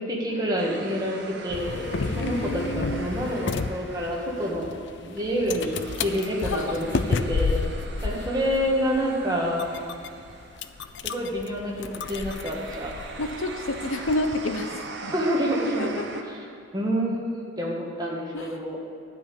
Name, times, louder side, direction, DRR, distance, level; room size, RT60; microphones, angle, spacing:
voice 1, 0.0-4.7 5.1-7.6 8.0-9.6 11.0-12.9 15.1-15.9 16.7-18.8, equal, 20° right, -3 dB, 1.7 m, -28 dB
sound 1, 0.6-16.2, right 4 dB, 55° right, 0.8 m, -42 dB
sound 2, 1.5-14.6, left 4 dB, 55° left, 0.4 m, -32 dB
voice 2, 2.2-3.1 6.4-6.8 13.2-15.1 15.8-16.0 18.3-18.6, left 1 dB, 75° left, 6 dB, 0.9 m, -30 dB
12.0 x 5.4 x 8.6 m, 2.4 s
head